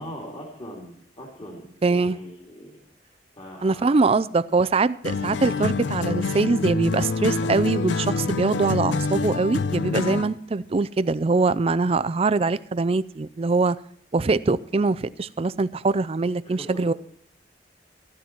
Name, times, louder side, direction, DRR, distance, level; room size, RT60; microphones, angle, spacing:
voice 1, 0.0-4.2 16.4-16.7, left 1 dB, 35° left, 0 dB, 2.6 m, -42 dB
voice 2, 1.8-2.2 3.6-13.8 14.1-16.9, right 3 dB, 35° right, 15 dB, 0.4 m, -23 dB
sound 1, 5.0-10.4, left 4 dB, 85° left, 0.5 m, -26 dB
15.5 x 11.0 x 4.4 m, 0.63 s
head